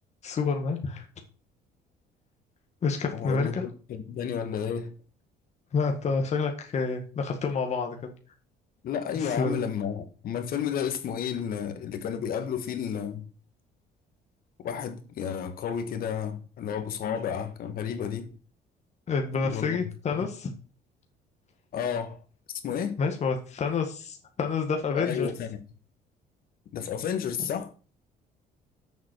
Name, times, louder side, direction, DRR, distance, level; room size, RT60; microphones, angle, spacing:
voice 1, 0.2-1.1 2.8-3.6 5.7-8.1 9.2-9.6 19.1-20.5 23.0-25.3, left 5 dB, 40° left, 1.7 m, -28 dB
voice 2, 3.1-4.9 8.8-13.3 14.6-18.3 19.4-19.8 20.1-20.3 21.7-22.2 22.6-23.0 24.9-25.6 26.7-27.7, left 8 dB, 60° left, 1.7 m, -32 dB
7.3 x 5.7 x 6.2 m
cardioid pair, 110°, 17 cm